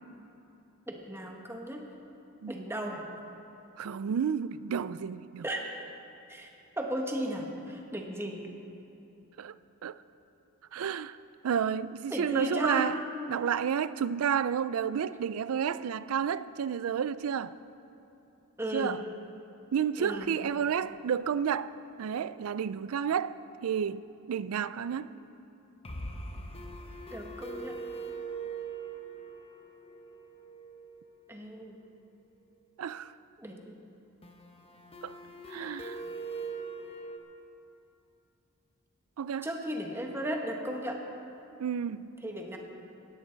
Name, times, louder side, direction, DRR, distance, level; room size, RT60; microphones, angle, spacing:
voice 1, 0.9-1.8 2.5-3.0 5.4-5.6 6.3-6.5 6.8-8.4 12.1-12.9 18.6-18.9 20.0-20.3 27.1-27.8 31.3-31.7 33.4-33.8 39.4-41.0 42.2-42.6, equal, 10° right, 1.3 m, -35 dB
voice 2, 3.8-5.5 9.4-9.5 9.8-10.0 10.7-11.2 11.4-13.0 13.3-17.6 18.7-19.0 19.7-21.7 22.0-25.1 32.8-33.1 35.0-35.2 35.5-36.0 39.2-39.5 41.6-42.1, right 7 dB, 70° right, 0.4 m, -31 dB
sound 1, 20.0-21.2 21.5-21.6 21.9-22.0 25.8-31.5 34.2-37.2, right 3 dB, 25° left, 1.1 m, -42 dB
17.5 x 13.5 x 4.0 m
head